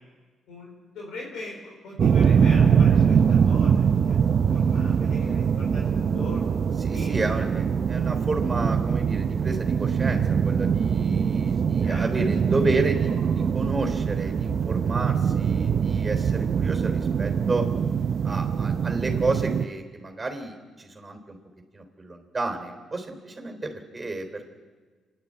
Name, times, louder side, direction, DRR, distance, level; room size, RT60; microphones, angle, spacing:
voice 1, 0.9-4.2 4.5-6.6 6.9-7.2 11.8-12.0, left 2 dB, 75° left, -2 dB, 4.7 m, -40 dB
sound 1, 2.0-19.6, right 7 dB, 50° right, 0.6 m, -23 dB
voice 2, 6.8-17.7 18.2-21.4 21.7-24.4, right 2 dB, 20° right, 4 dB, 3.5 m, -31 dB
27.0 x 11.0 x 8.8 m, 1.4 s
cardioid pair, 90°, 0 cm